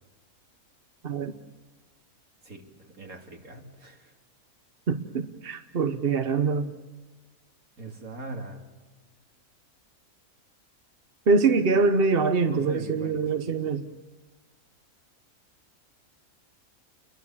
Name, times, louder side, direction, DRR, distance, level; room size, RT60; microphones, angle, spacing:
voice 1, 2.4-4.1 7.8-8.6 12.4-13.6, right 2 dB, 75° right, 2 dB, 3.4 m, -41 dB
voice 2, 4.9-6.7 11.3-13.9, right 4 dB, 45° right, 8 dB, 1.1 m, -24 dB
29.5 x 22.0 x 7.4 m, 1.3 s
omnidirectional pair, 1.5 m